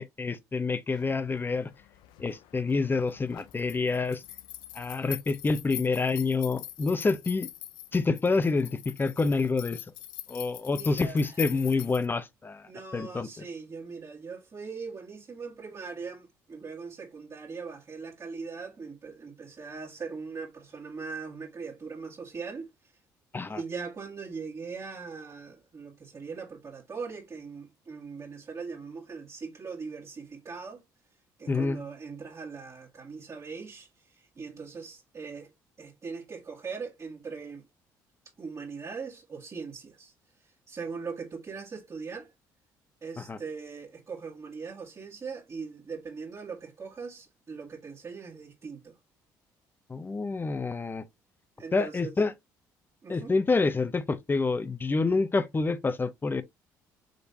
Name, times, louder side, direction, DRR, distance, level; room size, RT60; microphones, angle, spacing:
voice 1, 0.0-1.7 2.2-4.2 4.7-7.5 7.9-9.8 10.3-12.6 12.9-13.4 23.3-23.6 31.5-31.8 43.2-43.4 49.9-51.0 51.7-52.3 53.1-56.4, left 3 dB, 25° left, 0.7 m, -27 dB
sound 1, 0.9-12.1, left 14 dB, 75° left, 0.5 m, -44 dB
voice 2, 10.7-11.4 12.6-22.7 23.5-30.8 31.4-33.9 34.1-35.5 35.8-37.7 38.4-40.1 40.7-42.3 43.0-48.9 51.6-52.1 53.0-53.3, right 5 dB, 40° right, 1.4 m, -40 dB
5.1 x 3.3 x 2.6 m
supercardioid pair, 65°, 8 cm